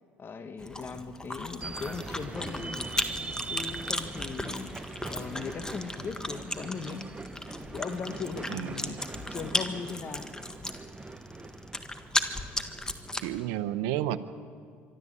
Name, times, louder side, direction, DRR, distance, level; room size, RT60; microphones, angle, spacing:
voice 1, 0.2-2.9 3.5-4.7 5.1-7.1 7.7-9.0 9.3-10.3, left 5 dB, 40° left, 9 dB, 1.3 m, -38 dB
Chewing mastication, 0.6-13.4, left 1 dB, 10° left, 1.7 m, -36 dB
sound 1, 1.6-13.2, right 3 dB, 20° right, 0.8 m, -42 dB
voice 2, 8.5-9.0 13.2-14.2, right 13 dB, 75° right, 13 dB, 0.9 m, -31 dB
24.5 x 12.5 x 8.5 m, 2.3 s
hypercardioid pair, 70°, 6 cm